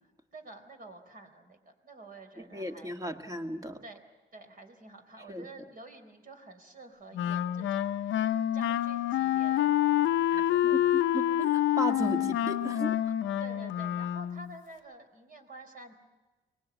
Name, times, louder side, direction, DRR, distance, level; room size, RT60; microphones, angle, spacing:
voice 1, 0.0-3.0 3.8-4.0 4.3-11.0 13.4-15.9, right 2 dB, 45° right, 6 dB, 4.1 m, -50 dB
voice 2, 2.4-3.8 5.3-5.5 10.7-13.0, right 1 dB, 15° right, 5 dB, 1.8 m, -35 dB
Wind instrument woodwind instrument, 7.1-14.5, left 12 dB, 75° left, 0.7 m, -27 dB
23.5 x 20.0 x 8.2 m, 1.2 s
cardioid pair, 90°, 20 cm